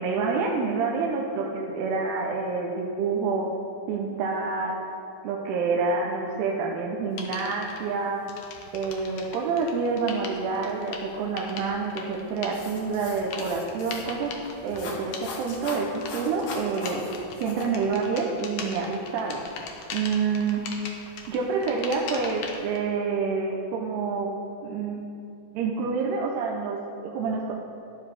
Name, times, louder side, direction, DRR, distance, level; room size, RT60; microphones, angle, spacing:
voice 1, 0.0-3.5 3.9-4.8 5.2-8.3 8.7-14.3 14.6-17.0 17.4-19.4 19.9-20.6 21.3-24.3 24.6-25.0 25.5-27.5, right 4 dB, 80° right, -2 dB, 2.9 m, -28 dB
sound 1, 7.2-7.8 8.3-22.8, left 5 dB, 90° left, 1.5 m, -40 dB
sound 2, 12.5-17.6, left 3 dB, 65° left, 2.0 m, -40 dB
12.0 x 11.5 x 3.5 m, 2.6 s
omnidirectional pair, 4.7 m